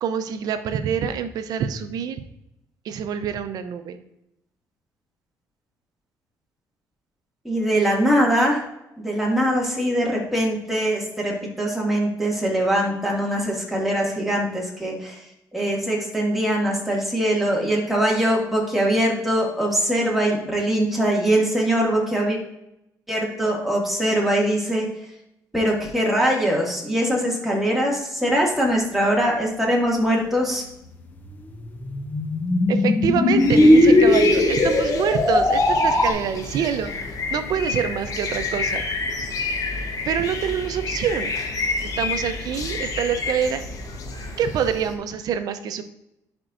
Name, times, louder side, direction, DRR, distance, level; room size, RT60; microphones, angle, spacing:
voice 1, 0.0-2.2 2.8-4.0 32.7-36.9 37.3-38.8 40.1-41.3 41.8-43.6 44.4-45.8, right 8 dB, 70° right, 10 dB, 0.7 m, -26 dB
voice 2, 7.4-8.6 9.0-15.2 15.5-22.4 23.1-24.9 25.5-30.7, equal, 5° right, -3 dB, 2.1 m, -22 dB
sound 1, 31.2-36.1, left 1 dB, 25° left, 0.9 m, -18 dB
sound 2, 33.4-44.9, left 4 dB, 55° left, 1.1 m, -29 dB
10.5 x 4.4 x 2.6 m, 0.84 s
cardioid pair, 110°, 7 cm